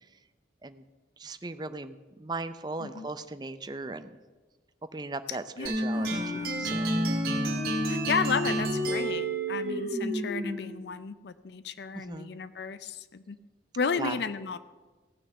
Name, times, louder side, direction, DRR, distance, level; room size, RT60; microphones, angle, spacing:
voice 1, 1.2-4.1 4.9-7.0 11.9-12.3 14.0-14.2, right 3 dB, 25° right, 11 dB, 0.5 m, -38 dB
voice 2, 5.3-6.7 7.9-13.4 13.8-14.6, left 5 dB, 70° left, 14 dB, 0.5 m, -33 dB
sound 1, 5.7-10.8, right 1 dB, 55° right, 2.1 m, -29 dB
15.5 x 6.4 x 7.7 m, 1.3 s
head